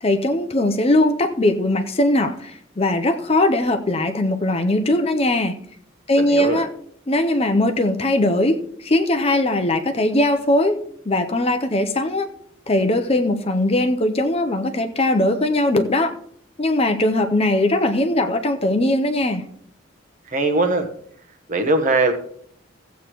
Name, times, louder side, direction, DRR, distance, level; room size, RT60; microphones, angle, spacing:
voice 1, 0.0-5.5 6.1-6.7 7.1-10.8 11.1-12.3 12.7-16.2 16.6-19.4, left 1 dB, 30° left, 7 dB, 0.6 m, -20 dB
voice 2, 6.2-6.6 20.3-20.9 21.5-22.1, right 2 dB, 40° right, 6 dB, 1.1 m, -20 dB
16.0 x 8.2 x 3.1 m, 0.65 s
head